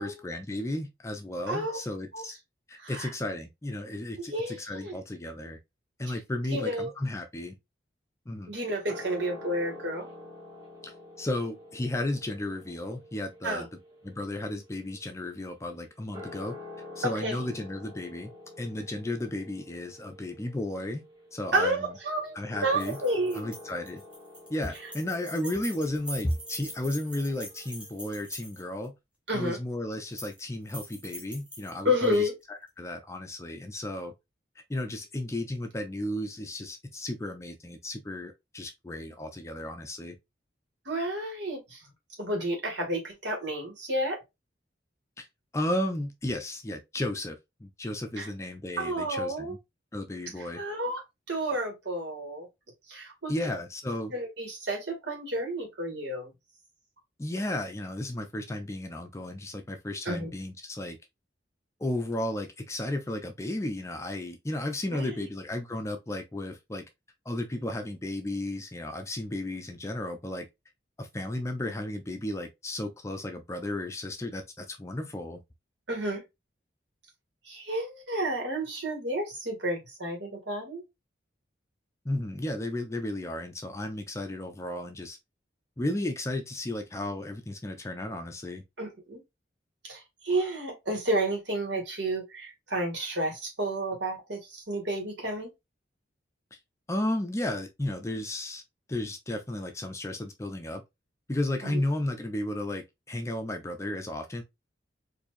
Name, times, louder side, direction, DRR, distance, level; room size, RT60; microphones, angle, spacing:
voice 1, 0.0-2.4 2.7-5.6 6.0-7.5 8.3-8.5 10.8-10.9 11.2-13.7 14.0-16.6 17.0-18.3 18.6-21.0 21.3-22.0 22.3-23.0 23.3-24.0 24.5-28.9 29.3-34.1 34.7-40.1 45.2-45.3 45.5-49.6 49.9-50.6 53.3-54.1 57.2-61.0 61.8-66.8 67.3-70.5 71.0-75.4 82.0-85.2 85.8-88.6 96.9-98.6 98.9-100.8 101.3-104.4, left 1 dB, 15° left, 0.4 m, -34 dB
voice 2, 1.5-1.8 2.1-2.2 2.7-3.1 4.2-4.6 4.8-5.0 6.5-6.9 8.5-10.1 13.4-13.7 17.0-17.4 21.5-22.4 22.6-23.5 29.3-29.6 31.8-32.3 40.9-41.8 42.2-44.2 48.2-48.3 48.8-49.5 50.6-51.0 51.3-52.5 52.9-53.3 54.1-56.3 60.1-60.3 64.9-65.0 75.9-76.2 77.5-80.8 88.8-89.2 89.8-95.5 101.6-101.8, right 1 dB, 70° right, 1.8 m, -31 dB
sound 1, 8.9-15.5 16.0-28.1, left 2 dB, 20° right, 1.4 m, -47 dB
sound 2, 22.7-28.9 29.9-30.4 30.7-32.2, equal, 5° right, 1.2 m, -43 dB
4.4 x 2.7 x 2.5 m
head